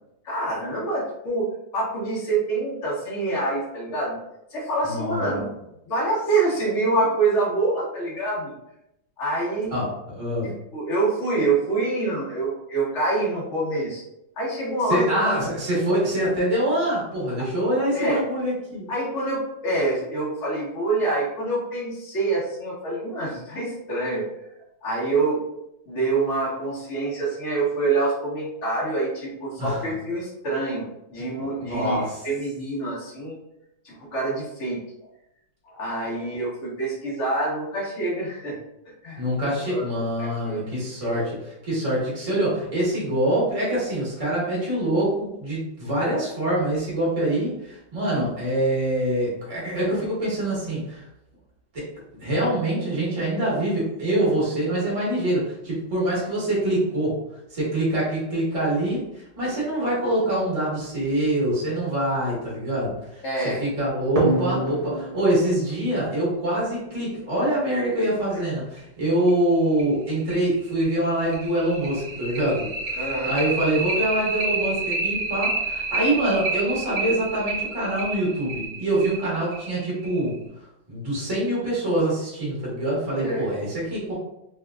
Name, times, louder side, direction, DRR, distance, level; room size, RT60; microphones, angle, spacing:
voice 1, 0.2-4.2 4.5-5.5 5.9-8.5 9.2-9.8 10.4-14.0 14.4-15.4 17.9-18.2 18.9-24.2 24.8-25.4 25.9-33.4 33.8-34.8 35.7-38.6 39.0-39.2 39.7-39.8 40.2-40.7 41.0-41.2 63.2-63.6 68.3-68.4 73.0-73.4 83.2-83.5, right 2 dB, 45° left, -5 dB, 1.0 m, -26 dB
voice 2, 4.8-5.4 9.7-10.5 14.9-18.9 29.6-29.8 31.7-32.2 39.2-51.0 51.7-51.9 52.2-57.2 57.5-80.4 80.9-84.1, right 1 dB, 20° right, -6 dB, 1.0 m, -25 dB
sound 1, 64.2-67.3 68.8-68.9 69.3-69.4 69.8-69.9 70.3-80.4, right 3 dB, 60° right, 1.2 m, -29 dB
3.4 x 2.8 x 2.3 m, 0.84 s
omnidirectional pair, 2.1 m